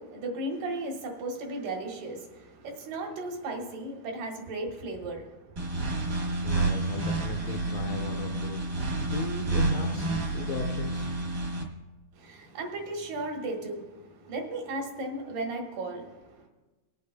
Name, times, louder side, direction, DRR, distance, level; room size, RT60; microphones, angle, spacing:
voice 1, 0.0-5.7 12.2-16.4, right 2 dB, 85° right, 1 dB, 3.1 m, -36 dB
sound 1, 5.6-11.6, right 2 dB, 60° right, 0.9 m, -29 dB
voice 2, 6.4-8.6 9.0-11.1, left 4 dB, 75° left, 3 dB, 1.7 m, -36 dB
24.5 x 8.3 x 2.2 m, 1.2 s
omnidirectional pair, 3.7 m